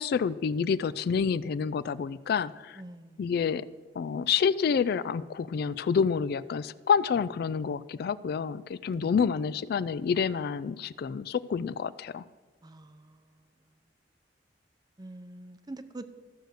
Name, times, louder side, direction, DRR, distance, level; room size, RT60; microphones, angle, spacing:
voice 1, 0.0-2.8 3.2-3.6 4.0-12.2, left 6 dB, 60° left, 17 dB, 0.3 m, -28 dB
voice 2, 2.7-3.3 8.9-9.1 12.6-13.7 15.0-16.1, right 2 dB, 25° right, 11 dB, 0.6 m, -46 dB
13.5 x 6.5 x 6.5 m, 1.4 s
head